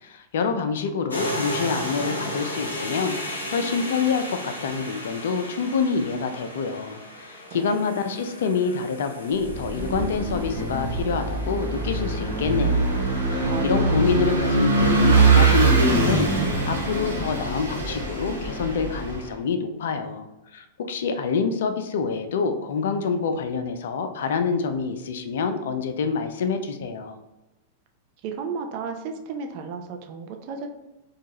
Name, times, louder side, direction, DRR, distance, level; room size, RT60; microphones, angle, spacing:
voice 1, 0.0-20.3 20.5-27.2, left 5 dB, 60° left, 8 dB, 0.4 m, -27 dB
sound 1, 1.1-15.2, equal, 75° left, 0.8 m, -36 dB
voice 2, 7.5-7.8 13.4-14.1 28.2-30.7, right 5 dB, 45° right, 4 dB, 0.5 m, -34 dB
Vehicle / Engine, 9.5-19.3, right 3 dB, 75° right, 1.2 m, -22 dB
4.4 x 2.3 x 2.9 m, 1.0 s
figure-of-eight pair, 95°, 0 cm